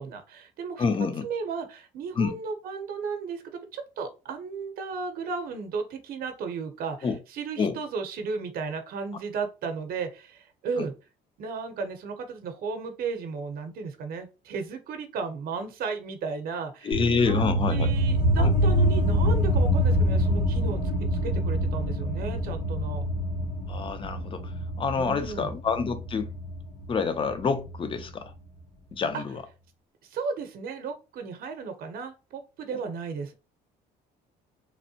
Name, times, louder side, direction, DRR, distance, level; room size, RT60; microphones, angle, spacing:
voice 1, 0.0-0.8 1.2-10.9 11.4-20.8 21.2-23.0 25.0-25.5 29.1-29.2 30.0-33.3, right 5 dB, 60° right, 0.7 m, -34 dB
voice 2, 0.8-1.3 2.2-2.4 7.0-7.2 7.6-7.8 16.8-17.9 18.4-18.5 23.7-24.5 24.8-26.3 26.9-28.3 28.9-29.4, left 5 dB, 30° left, 0.5 m, -27 dB
sound 1, 16.9-28.0, equal, 55° left, 1.0 m, -26 dB
3.0 x 2.1 x 2.7 m
cardioid pair, 110°, 17 cm